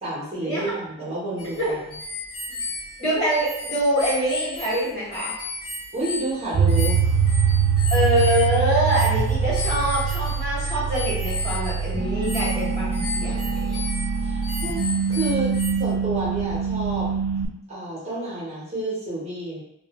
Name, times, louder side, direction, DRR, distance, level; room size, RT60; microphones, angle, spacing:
voice 1, 0.0-1.7 2.5-2.6 5.9-7.0 14.2-17.1 17.7-19.6, right 2 dB, 30° right, -8 dB, 0.9 m, -30 dB
sound 1, 1.4-15.7, left 3 dB, 85° left, 1.0 m, -34 dB
voice 2, 3.0-5.3 7.9-13.8, equal, 30° left, -10 dB, 1.1 m, -24 dB
sound 2, 6.5-17.5, right 6 dB, 75° right, 0.3 m, -23 dB
2.4 x 2.3 x 2.9 m, 0.81 s
head